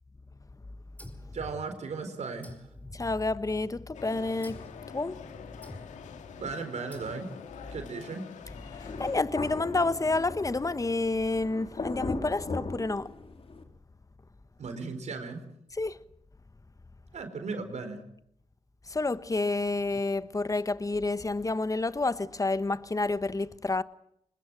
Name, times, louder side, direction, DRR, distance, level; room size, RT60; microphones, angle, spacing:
sound 1, 1.0-2.0 2.4-3.7 4.4-4.9 5.6-6.2 6.9-7.5, left 1 dB, 15° left, 4.9 m, -48 dB
voice 1, 1.3-2.6 6.4-7.3 7.7-8.3 14.6-15.4 17.1-18.0, right 4 dB, 70° right, 4.3 m, -36 dB
voice 2, 2.9-4.7 4.9-5.3 8.7-13.1 15.8-16.0 18.9-23.8, left 3 dB, 30° left, 1.2 m, -29 dB
sound 2, 3.9-9.2, left 7 dB, 90° left, 1.9 m, -46 dB
Thunder, 8.8-13.6, left 3 dB, 55° left, 3.6 m, -38 dB
23.5 x 20.5 x 7.6 m
supercardioid pair, 45°, 12 cm